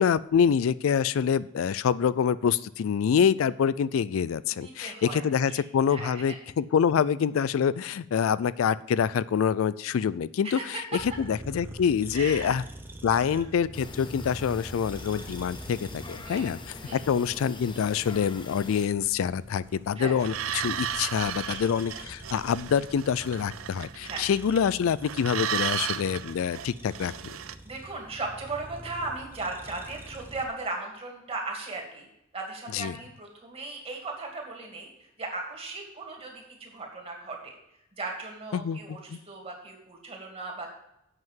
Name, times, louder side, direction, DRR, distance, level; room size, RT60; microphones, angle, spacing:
voice 1, 0.0-12.6 13.0-16.6 16.9-27.1 32.7-33.0 38.5-39.2, left 7 dB, 75° left, 18 dB, 0.3 m, -26 dB
voice 2, 4.5-5.2 5.5-5.6 5.9-6.4 10.4-10.7 12.1-12.6 13.1-13.5 16.2-16.5 16.8-17.0 20.0-20.1 21.4-21.6 21.9-22.1 24.1-24.3 27.6-32.1 32.3-34.9 35.2-37.5 38.0-40.7, right 3 dB, 30° right, 0 dB, 2.3 m, -37 dB
sound 1, 11.0-30.5, right 1 dB, 10° right, 0.8 m, -45 dB
sound 2, 13.7-18.9, left 3 dB, 25° left, 0.7 m, -43 dB
sound 3, 20.2-24.7 25.0-27.5, right 9 dB, 75° right, 0.5 m, -34 dB
8.0 x 5.8 x 7.3 m, 0.81 s
head